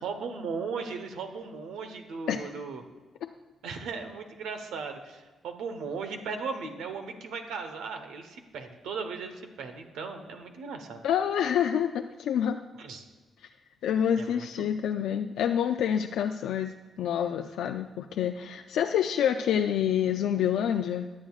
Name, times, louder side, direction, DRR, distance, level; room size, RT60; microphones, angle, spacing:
voice 1, 0.0-2.8 3.6-11.0 12.8-13.1 14.2-14.7, right 5 dB, 85° right, 6 dB, 1.0 m, -37 dB
voice 2, 11.0-12.6 13.8-21.1, left 9 dB, 85° left, 5 dB, 0.3 m, -27 dB
21.5 x 7.5 x 2.4 m, 1.3 s
supercardioid pair, 60°, 0 cm